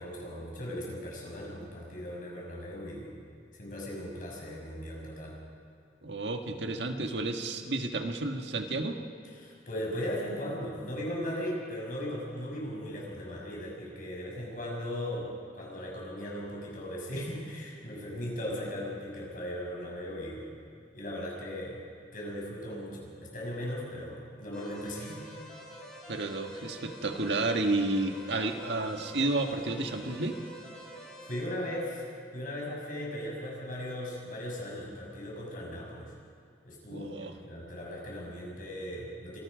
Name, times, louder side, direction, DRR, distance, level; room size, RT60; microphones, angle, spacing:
voice 1, 0.0-3.1 3.5-5.4 9.4-20.5 20.9-21.8 22.1-25.3 31.2-32.1 32.3-36.1 36.6-39.4, equal, 50° left, -2 dB, 6.3 m, -38 dB
voice 2, 6.0-9.0 26.1-30.4 36.9-37.3, right 2 dB, 70° right, 4 dB, 1.6 m, -31 dB
sound 1, 24.5-31.4, right 1 dB, 5° left, 5.5 m, -47 dB
26.0 x 19.0 x 5.2 m, 2.4 s
head